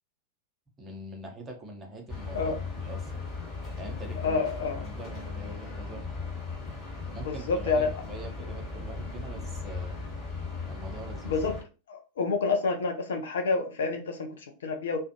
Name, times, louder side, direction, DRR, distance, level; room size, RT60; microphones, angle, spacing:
voice 1, 0.8-3.3 3.8-4.5 4.8-6.1 7.1-10.0 10.7-11.3, right 2 dB, 20° right, 0.8 m, -43 dB
sound 1, 2.1-11.6, left 4 dB, 20° left, 1.4 m, -37 dB
voice 2, 4.2-4.8 7.2-7.9 11.2-11.6 11.9-15.0, left 4 dB, 60° left, 0.5 m, -28 dB
2.5 x 2.2 x 2.7 m
figure-of-eight pair, 90°, 0 cm